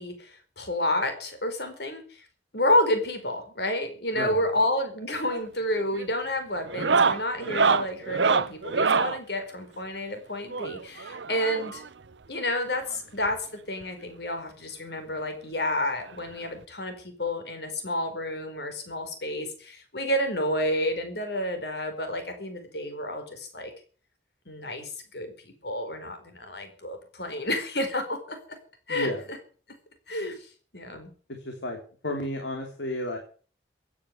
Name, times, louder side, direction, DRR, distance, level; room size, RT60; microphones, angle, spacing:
voice 1, 0.0-2.0 2.5-11.8 12.3-23.7 24.5-28.4 28.9-29.1 30.1-30.4 30.7-31.1, left 1 dB, 65° left, 7 dB, 4.6 m, -30 dB
sound 1, 5.1-5.5 5.8-6.1 6.7-9.2 10.5-11.9 12.9-13.0 13.2-13.4 13.8-13.9 15.2-15.3 16.6-16.7, right 5 dB, 80° right, 0.8 m, -25 dB
voice 2, 28.9-29.2 31.3-31.8 32.0-33.2, left 1 dB, 85° left, 3 dB, 3.2 m, -32 dB
16.0 x 9.9 x 8.0 m, 0.42 s
head